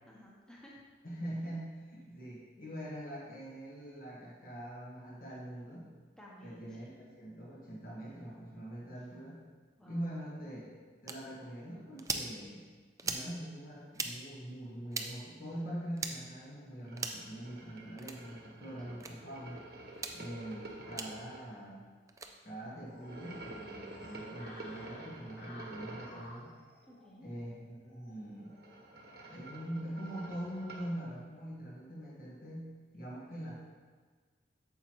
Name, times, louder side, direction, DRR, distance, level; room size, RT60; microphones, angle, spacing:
voice 1, 0.1-0.8 6.2-6.9 9.8-10.1 18.8-19.0 26.9-27.3, equal, 5° left, -4 dB, 1.0 m, -55 dB
voice 2, 1.0-5.9 6.4-9.4 9.8-10.7 11.0-12.6 13.0-19.6 20.1-21.8 22.4-26.5 27.2-28.5 29.3-33.5, right 1 dB, 50° left, -6 dB, 1.6 m, -43 dB
sound 1, 11.1-11.2 12.0-12.3 13.0-13.3 13.9-14.1 14.9-15.1 16.0-16.1 17.0-17.3 18.0-18.2 19.0-19.1 19.9-20.2 21.0-21.1 22.1-22.3, right 4 dB, 20° right, 0.4 m, -37 dB
sound 2, 16.8-21.4 23.0-26.2 28.4-30.9, right 2 dB, 60° right, 1.2 m, -49 dB
sound 3, 22.8-30.9, left 1 dB, 65° left, 2.1 m, -57 dB
9.0 x 7.3 x 3.1 m, 1.5 s
head